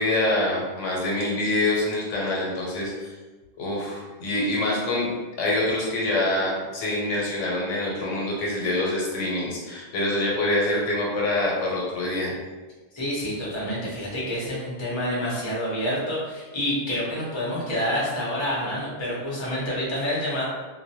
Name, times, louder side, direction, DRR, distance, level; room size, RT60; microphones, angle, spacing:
voice 1, 0.0-3.1 3.6-12.3, left 1 dB, 85° left, -4 dB, 1.0 m, -25 dB
voice 2, 12.9-20.4, equal, 30° left, -6 dB, 0.6 m, -28 dB
2.2 x 2.2 x 2.7 m, 1.3 s
omnidirectional pair, 1.3 m